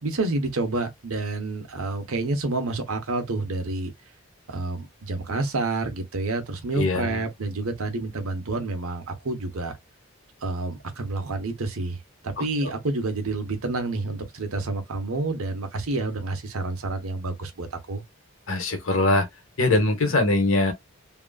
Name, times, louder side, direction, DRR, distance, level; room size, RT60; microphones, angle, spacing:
voice 1, 0.0-3.9 4.5-9.8 10.4-18.0, right 2 dB, 90° right, 0.9 m, -29 dB
voice 2, 6.7-7.3 12.4-12.7 18.5-19.3 19.6-20.7, left 2 dB, 70° left, 1.1 m, -22 dB
2.9 x 2.5 x 2.3 m
head